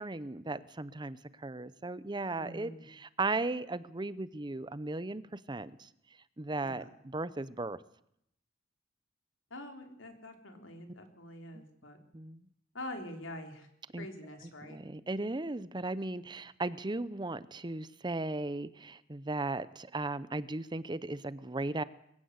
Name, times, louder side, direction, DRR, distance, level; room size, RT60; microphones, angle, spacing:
voice 1, 0.0-5.9 6.4-7.8 11.5-11.6 12.1-12.4 13.9-14.1 14.7-21.8, right 2 dB, 25° right, 16 dB, 0.7 m, -36 dB
voice 2, 2.3-2.9 6.6-6.9 9.5-12.0 12.7-13.7 14.0-14.8, left 1 dB, 85° left, 5 dB, 3.7 m, -45 dB
22.5 x 16.0 x 8.1 m, 0.75 s
head